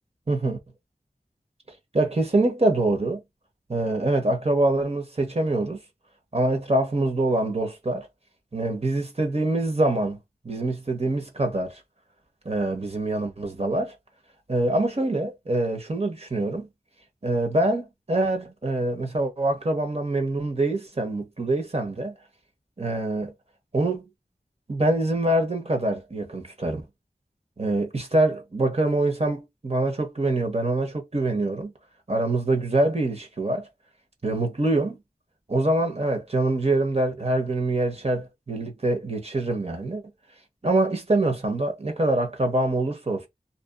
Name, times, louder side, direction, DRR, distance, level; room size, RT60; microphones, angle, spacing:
voice 1, 0.3-0.6 1.9-3.2 3.7-5.8 6.3-8.1 8.5-10.2 10.4-11.8 12.4-14.0 14.5-16.7 17.2-22.1 22.8-23.3 23.7-24.1 24.7-26.8 27.6-31.7 32.1-33.7 34.2-35.0 35.5-40.0 40.6-43.3, right 2 dB, 40° right, 0.9 m, -25 dB
2.7 x 2.3 x 2.3 m
wide cardioid pair, 45°, 16 cm